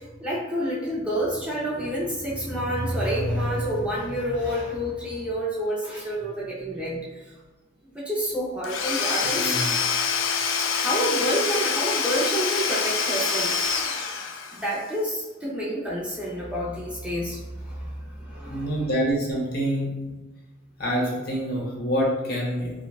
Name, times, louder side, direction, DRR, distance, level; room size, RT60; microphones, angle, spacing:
voice 1, 0.0-7.3 7.9-9.5 10.6-13.5 14.5-18.9, equal, 5° right, -6 dB, 0.5 m, -28 dB
Domestic sounds home sounds / Tools, 8.6-14.7, left 6 dB, 80° left, 0.4 m, -26 dB
voice 2, 9.2-9.7 18.5-19.9 20.8-22.7, equal, 50° left, -3 dB, 0.8 m, -26 dB
4.5 x 2.2 x 2.3 m, 1.1 s
head